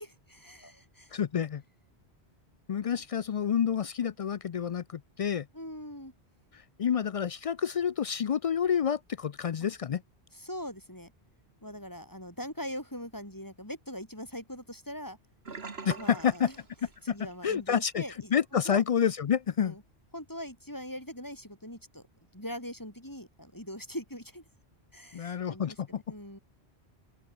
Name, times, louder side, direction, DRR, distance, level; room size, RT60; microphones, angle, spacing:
voice 1, 0.0-1.1 5.5-6.1 10.3-11.1 11.6-15.2 16.0-16.5 17.0-18.4 18.6-18.8 19.6-19.8 20.1-22.0 22.3-24.4 24.9-26.4, equal, 15° left, 6.5 m, -41 dB
voice 2, 1.1-1.6 2.7-5.5 6.5-10.0 15.9-16.5 17.4-18.0 18.3-19.8 25.1-26.1, left 8 dB, 60° left, 0.3 m, -29 dB
Sink (filling or washing), 15.5-17.4 17.7-18.0 18.4-18.5, right 4 dB, 70° right, 2.1 m, -43 dB
open air
omnidirectional pair, 1.1 m